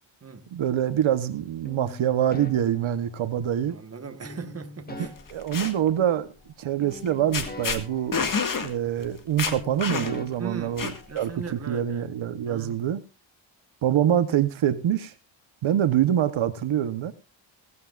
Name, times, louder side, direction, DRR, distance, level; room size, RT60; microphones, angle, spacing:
voice 1, 0.5-3.7 4.9-6.3 6.6-8.2 8.6-13.0 13.8-15.1 15.6-17.1, right 10 dB, 80° right, 1.1 m, -25 dB
sound 1, 1.6-3.6 4.2-6.5 6.8-9.1 9.4-11.4, left 2 dB, 20° left, 1.4 m, -44 dB
voice 2, 3.6-5.1 10.4-10.8 11.1-12.1 12.4-12.8, right 5 dB, 30° right, 1.5 m, -38 dB
sound 2, 5.2-5.7 6.9-7.1 7.3-7.8 8.1-8.7 9.0-9.1 9.4-10.3 10.8-11.2, left 5 dB, 45° left, 2.0 m, -28 dB
17.0 x 15.5 x 2.5 m
wide cardioid pair, 140°, 47 cm